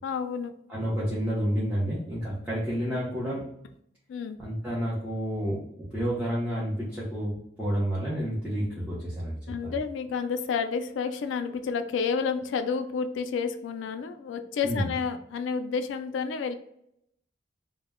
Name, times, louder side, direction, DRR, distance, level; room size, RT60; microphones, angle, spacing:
voice 1, 0.0-0.5 4.1-4.4 9.5-16.5, left 5 dB, 85° left, 8 dB, 0.3 m, -30 dB
voice 2, 0.7-3.5 4.4-5.6 5.9-9.7 14.6-14.9, equal, 5° right, -9 dB, 0.6 m, -30 dB
2.1 x 2.1 x 3.4 m, 0.74 s
head